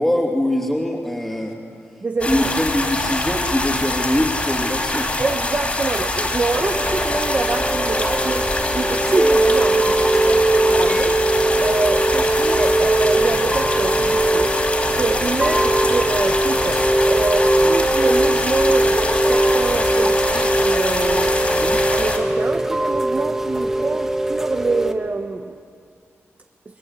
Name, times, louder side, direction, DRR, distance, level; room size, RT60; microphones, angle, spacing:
voice 1, 0.0-1.6 2.2-5.1 21.6-21.8, left 1 dB, 10° left, -5 dB, 3.1 m, -22 dB
voice 2, 2.0-2.5 5.2-11.2 11.6-14.5 14.9-21.3 21.9-25.6, right 3 dB, 35° right, 4 dB, 1.0 m, -25 dB
sound 1, 2.2-22.2, left 2 dB, 30° left, 4.3 m, -24 dB
Chime / Rain, 6.5-24.9, right 1 dB, 10° right, 1.9 m, -20 dB
30.0 x 21.0 x 8.2 m, 2.2 s
wide cardioid pair, 110°, 5 cm